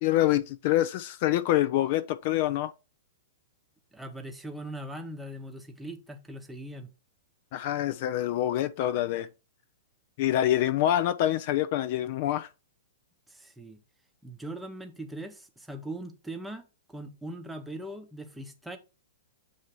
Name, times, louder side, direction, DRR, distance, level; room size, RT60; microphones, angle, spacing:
voice 1, 0.0-2.7 7.5-9.3 10.2-12.5, left 13 dB, 50° left, 0.4 m, -26 dB
voice 2, 3.9-6.9 13.3-13.8 14.2-18.8, right 1 dB, 5° right, 0.8 m, -40 dB
7.4 x 2.7 x 4.6 m
hypercardioid pair, 110°, 0 cm